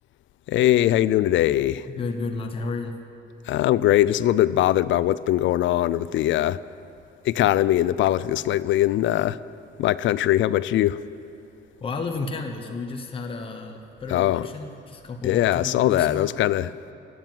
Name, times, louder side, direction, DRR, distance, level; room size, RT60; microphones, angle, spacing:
voice 1, 0.5-1.9 3.5-6.6 7.2-9.4 9.8-11.0 14.1-14.5 15.2-16.7, left 13 dB, 70° left, 18 dB, 0.4 m, -21 dB
voice 2, 1.9-2.9 11.8-16.3, left 3 dB, 25° left, 4 dB, 1.0 m, -32 dB
16.0 x 7.7 x 9.2 m, 2.8 s
cardioid pair, 160°, 20 cm